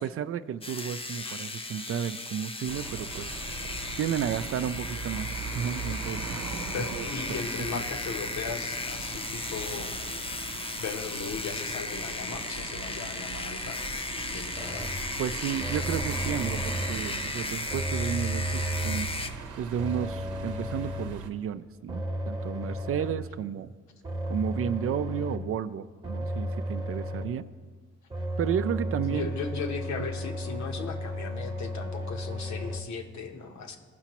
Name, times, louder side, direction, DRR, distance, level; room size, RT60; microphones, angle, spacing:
voice 1, 0.0-3.4 4.0-6.3 6.9-7.7 15.2-19.1 19.6-23.7 24.3-27.5 28.4-29.3 29.9-30.1, right 9 dB, 50° right, 13 dB, 0.4 m, -32 dB
sound 1, 0.6-19.3, left 3 dB, 20° left, 0.6 m, -36 dB
sound 2, 2.7-21.3, right 4 dB, 75° right, 0.8 m, -40 dB
voice 2, 6.7-10.0 10.8-13.9 14.3-15.0 29.1-33.8, left 5 dB, 70° left, 5 dB, 1.0 m, -37 dB
sound 3, 14.5-15.1 15.6-17.1 17.7-19.2 19.8-21.2 21.9-23.3 24.0-25.6 26.0-27.4 28.1-32.8, equal, 15° right, 0.9 m, -34 dB
16.0 x 5.7 x 3.0 m, 1.5 s
cardioid pair, 90°, 30 cm